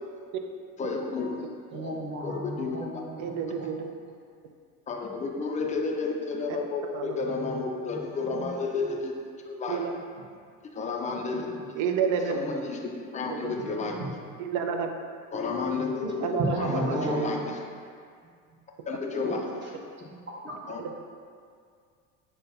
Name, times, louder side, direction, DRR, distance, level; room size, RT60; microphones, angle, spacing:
voice 1, 0.8-1.3 2.2-2.9 4.9-9.2 9.4-9.8 10.7-11.5 12.3-12.8 13.1-14.0 15.3-17.4 18.9-19.4 20.7-21.0, left 4 dB, 20° left, 1 dB, 0.4 m, -31 dB
voice 2, 1.7-3.7 11.3-11.4 14.0-14.1 16.0-16.1 16.4-17.4 18.5-18.6 19.2-19.3 19.6-19.7 20.4-20.6, right 1 dB, 25° right, -4 dB, 1.0 m, -33 dB
voice 3, 3.2-3.9 6.5-6.6 6.9-7.2 9.7-10.0 11.8-12.4 13.2-13.5 14.4-14.9 16.2-17.0, right 7 dB, 45° right, 5 dB, 0.5 m, -30 dB
6.3 x 2.2 x 2.5 m, 2.1 s
hypercardioid pair, 70°, 43 cm